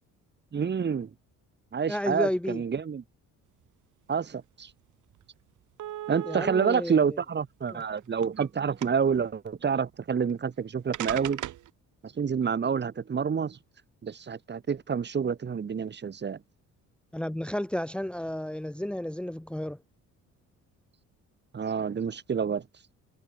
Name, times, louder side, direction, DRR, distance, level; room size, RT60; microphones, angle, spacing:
voice 1, 0.5-1.1 1.7-3.0 4.1-4.7 6.1-11.4 12.0-13.6 14.0-16.4 21.5-22.7, right 6 dB, 35° right, 2.4 m, -28 dB
voice 2, 1.9-2.6 6.3-7.2 7.7-7.8 17.1-19.8, left 1 dB, 5° left, 1.4 m, -32 dB
sound 1, 4.7-4.8 5.1-5.2 5.8-6.7 7.6-8.5 8.8-9.2 10.3-10.4 10.9-11.7, right 13 dB, 75° right, 6.9 m, -36 dB
cardioid pair, 120°, 31 cm